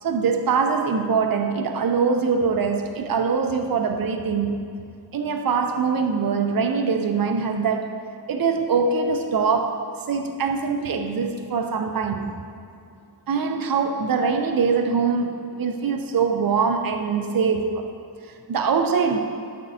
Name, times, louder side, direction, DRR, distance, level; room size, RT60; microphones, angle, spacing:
voice 1, 0.0-4.7 5.1-8.0 8.3-9.8 10.1-12.3 13.3-17.9 18.3-19.2, right 5 dB, 55° right, 5 dB, 0.6 m, -23 dB
13.0 x 7.2 x 2.8 m, 2.4 s
wide cardioid pair, 110°, 41 cm